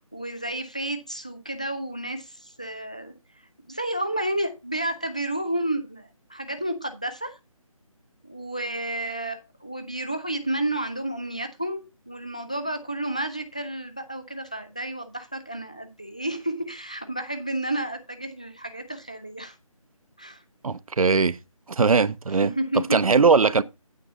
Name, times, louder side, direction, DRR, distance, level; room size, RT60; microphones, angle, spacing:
voice 1, 0.0-3.1 3.7-7.4 8.2-19.6 20.2-20.4 22.4-23.0, right 1 dB, 10° left, 0.4 m, -31 dB
voice 2, 20.6-21.4 21.7-22.5 22.9-23.6, right 4 dB, 75° right, 0.6 m, -20 dB
8.9 x 7.9 x 3.9 m
figure-of-eight pair, 165°, 18 cm